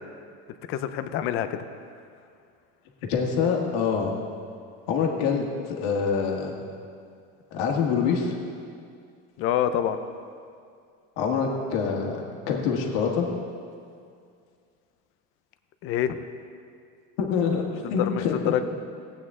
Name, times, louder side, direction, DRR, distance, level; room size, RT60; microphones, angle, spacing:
voice 1, 0.7-1.6 9.4-10.0 15.8-16.2 17.8-18.2 18.5-18.6, left 10 dB, 40° left, 10 dB, 0.5 m, -26 dB
voice 2, 3.0-4.1 4.9-6.5 7.5-8.3 11.2-13.3 17.2-18.5, left 6 dB, 65° left, 1 dB, 1.7 m, -25 dB
17.5 x 8.8 x 3.7 m, 2.3 s
cardioid pair, 170°, 36 cm